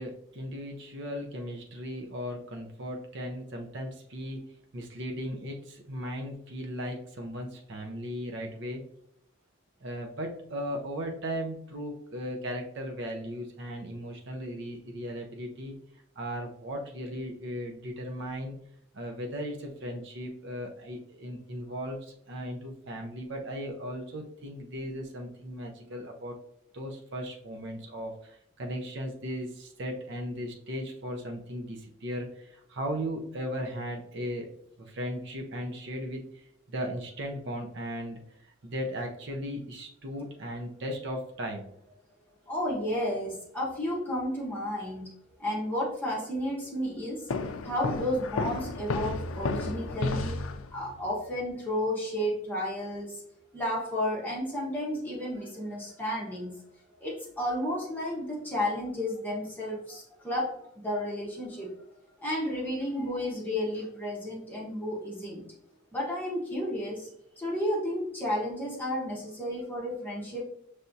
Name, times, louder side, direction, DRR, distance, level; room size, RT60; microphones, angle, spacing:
voice 1, 0.0-4.4 4.7-8.8 9.8-15.8 16.2-18.6 18.9-26.4 26.7-34.5 34.8-41.7, equal, 55° right, 2 dB, 0.6 m, -37 dB
voice 2, 42.5-47.4 47.6-50.4 50.7-53.2 53.5-56.5 57.0-61.7 62.2-65.4 65.9-67.1 67.4-70.4, left 1 dB, 10° left, -5 dB, 1.2 m, -32 dB
sound 1, 47.3-51.0, left 3 dB, 70° left, 0.4 m, -32 dB
5.6 x 3.4 x 2.6 m, 0.71 s
head